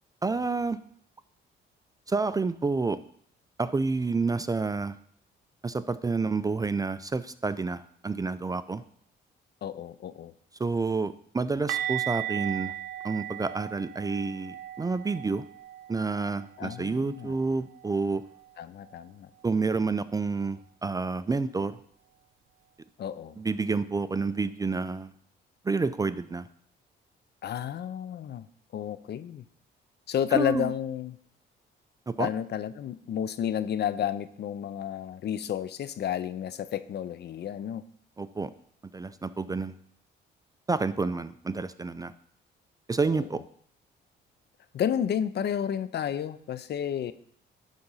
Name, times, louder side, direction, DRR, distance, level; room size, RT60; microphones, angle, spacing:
voice 1, 0.2-0.8 2.1-3.0 3.6-5.0 5.6-8.8 10.6-12.7 13.0-15.5 15.9-18.2 19.4-21.8 23.4-25.1 25.6-26.5 30.3-30.7 32.1-32.3 38.2-38.5 38.9-39.8 40.7-42.1 42.9-43.4, right 4 dB, 20° right, 14 dB, 0.4 m, -29 dB
voice 2, 9.6-10.3 16.6-17.3 18.6-19.3 23.0-23.4 27.4-28.5 28.7-29.4 30.1-31.2 32.2-37.8 43.1-43.2 44.7-47.1, left 9 dB, 60° left, 15 dB, 0.6 m, -31 dB
sound 1, 11.7-17.5 17.7-18.0 18.3-18.5 21.7-21.8, right 12 dB, 85° right, 0.7 m, -37 dB
11.5 x 3.9 x 5.6 m, 0.64 s
cardioid pair, 90°, 20 cm